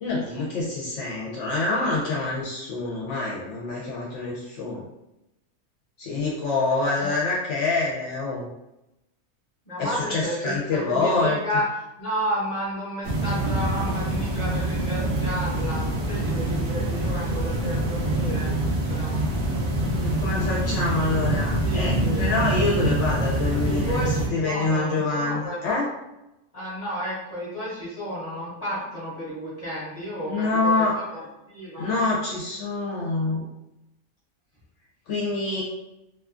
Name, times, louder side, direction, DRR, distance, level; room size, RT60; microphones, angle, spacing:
voice 1, 0.0-4.9 6.0-8.5 9.8-11.4 20.0-25.9 30.2-30.9 31.8-33.4 35.1-35.6, left 3 dB, 70° left, -5 dB, 0.9 m, -26 dB
voice 2, 9.7-11.6 12.0-18.5 18.9-19.2 21.3-22.3 23.4-25.6 26.5-31.0 31.5-32.1, equal, 35° left, -9 dB, 0.8 m, -32 dB
sound 1, 13.0-24.3, right 1 dB, 60° right, 0.7 m, -25 dB
2.6 x 2.3 x 2.4 m, 0.92 s
omnidirectional pair, 1.3 m